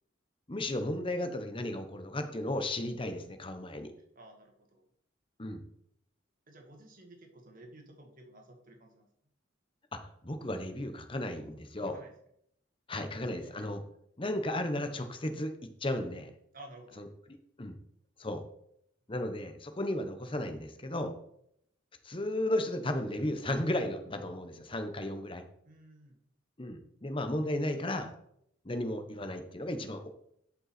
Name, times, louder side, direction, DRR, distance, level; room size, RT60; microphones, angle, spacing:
voice 1, 0.5-3.9 5.4-5.6 9.9-11.9 12.9-13.8 14.2-15.5 15.8-16.3 17.0-17.1 17.6-17.8 18.2-18.4 19.1-21.1 22.0-25.4 26.6-28.1 28.6-30.1, left 1 dB, 25° left, 7 dB, 1.0 m, -34 dB
voice 2, 4.2-4.9 6.5-9.1 11.8-12.1 13.4-13.7 16.5-17.0 25.7-26.2, right 1 dB, 45° right, 2 dB, 1.9 m, -53 dB
12.0 x 5.6 x 4.3 m, 0.72 s
head